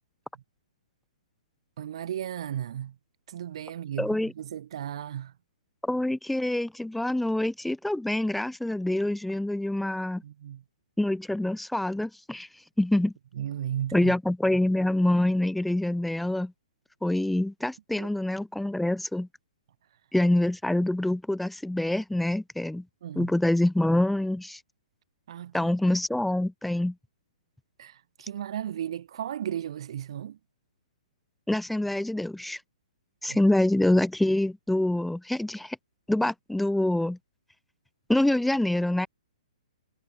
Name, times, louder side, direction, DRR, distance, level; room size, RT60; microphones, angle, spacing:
voice 1, 1.8-3.0 3.3-5.3 10.2-10.6 13.3-14.1 18.0-18.1 23.0-23.3 25.3-25.7 27.8-30.4 33.3-33.4, right 10 dB, 45° right, 1.4 m, -35 dB
voice 2, 4.0-4.3 5.8-10.2 11.0-12.5 12.8-13.1 13.9-16.5 17.0-19.3 20.1-22.8 23.2-24.6 25.5-26.9 31.5-32.6 33.2-35.8 36.1-37.2 38.1-39.1, left 1 dB, ahead, 1.2 m, -26 dB
figure-of-eight pair, 120°, 4 cm